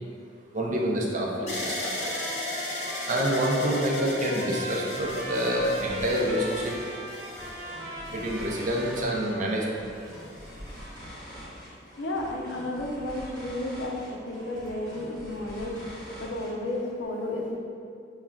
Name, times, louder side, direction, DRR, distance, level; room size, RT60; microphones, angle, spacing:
voice 1, 0.5-1.7 3.1-6.7 8.1-9.6, equal, 45° right, -2 dB, 0.5 m, -27 dB
sound 1, 1.5-9.5 10.2-10.8, left 1 dB, 40° left, 0.7 m, -37 dB
Trumpet, 1.5-9.5, right 1 dB, 80° right, 1.0 m, -40 dB
sound 2, 4.7-17.0, equal, 20° left, 1.1 m, -45 dB
voice 2, 12.0-17.6, left 1 dB, 75° left, -1 dB, 0.5 m, -32 dB
6.3 x 2.3 x 2.2 m, 2.3 s
head